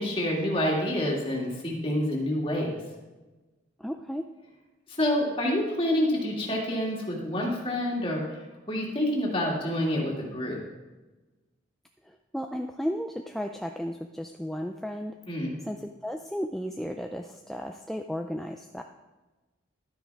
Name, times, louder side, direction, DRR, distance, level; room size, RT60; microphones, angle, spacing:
voice 1, 0.0-2.7 5.0-8.2 8.7-10.6 15.3-15.6, left 1 dB, 25° left, -2 dB, 2.2 m, -27 dB
voice 2, 3.8-4.3 12.0-15.2 15.6-18.8, equal, ahead, 4 dB, 0.3 m, -34 dB
12.0 x 9.9 x 3.5 m, 1.2 s
head